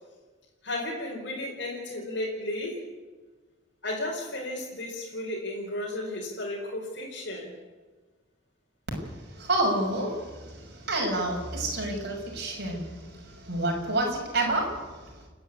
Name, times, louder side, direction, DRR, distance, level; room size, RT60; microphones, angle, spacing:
voice 1, 0.6-2.8 3.8-7.5, left 1 dB, 60° left, -4 dB, 4.6 m, -34 dB
voice 2, 9.1-15.1, right 2 dB, 55° right, 0 dB, 6.4 m, -29 dB
29.5 x 10.0 x 9.8 m, 1.3 s
head